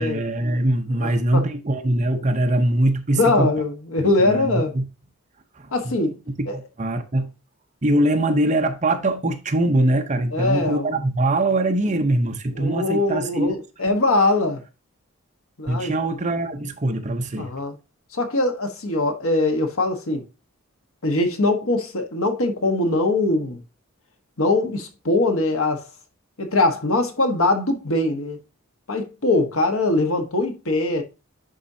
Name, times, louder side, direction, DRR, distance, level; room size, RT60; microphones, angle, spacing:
voice 1, 0.0-3.5 4.2-4.8 5.6-5.9 6.4-7.3 7.8-13.9 15.7-17.5, right 1 dB, 35° right, 0.8 m, -22 dB
voice 2, 1.0-1.5 3.1-4.7 5.7-6.1 6.5-6.6 10.3-11.0 12.5-14.6 15.6-15.9 17.4-17.8 18.1-20.2 21.0-23.6 24.4-25.9 26.4-28.4 28.9-31.0, left 2 dB, 80° left, 1.3 m, -22 dB
10.0 x 4.3 x 2.7 m
head